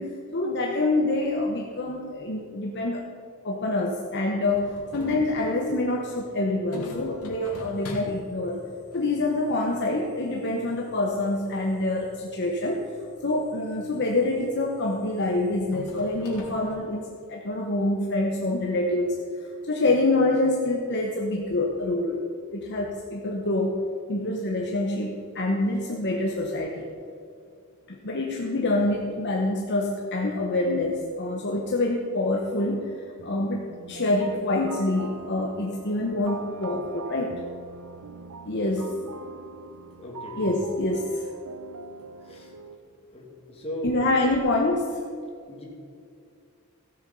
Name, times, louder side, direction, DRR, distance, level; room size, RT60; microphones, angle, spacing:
voice 1, 0.0-3.0 3.4-8.6 8.9-12.8 13.2-17.0 17.3-19.2 19.6-22.2 22.5-23.8 24.1-26.9 27.9-37.3 38.4-38.9 40.4-41.3 43.8-45.0, left 2 dB, 50° left, 0 dB, 1.0 m, -26 dB
sound 1, 4.5-16.8, left 1 dB, 80° left, 2.4 m, -44 dB
sound 2, 32.4-42.8, right 4 dB, 85° right, 0.7 m, -43 dB
voice 2, 40.0-40.4 42.2-42.5 43.1-43.9 45.5-45.7, equal, 25° left, -2 dB, 2.3 m, -37 dB
16.0 x 7.2 x 5.4 m, 2.4 s
head